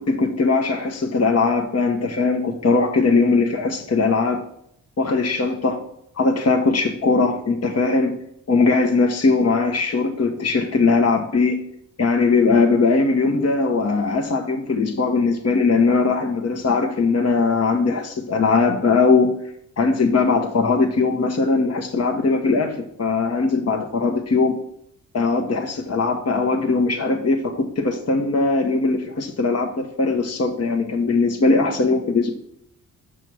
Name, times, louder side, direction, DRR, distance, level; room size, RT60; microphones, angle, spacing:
voice 1, 0.0-4.4 5.0-5.8 6.2-8.1 8.5-11.6 12.0-19.3 19.8-24.6 25.1-32.4, left 4 dB, 45° left, 4 dB, 1.1 m, -20 dB
6.2 x 5.0 x 6.2 m, 0.73 s
cardioid pair, 60°, 35 cm